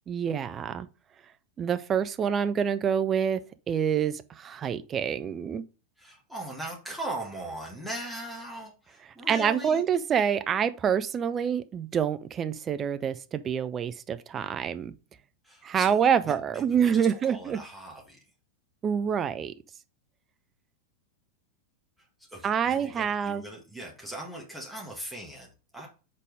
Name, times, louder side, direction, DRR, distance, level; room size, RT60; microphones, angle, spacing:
voice 1, 0.1-0.9 1.6-3.4 3.7-5.6 9.3-14.9 15.6-17.6 18.8-19.5 22.4-23.4, right 7 dB, 25° right, 0.5 m, -27 dB
voice 2, 6.0-9.8 15.4-16.0 16.2-18.2 22.0-25.9, right 1 dB, 5° right, 1.7 m, -40 dB
5.4 x 4.2 x 4.7 m
figure-of-eight pair, 90°, 0 cm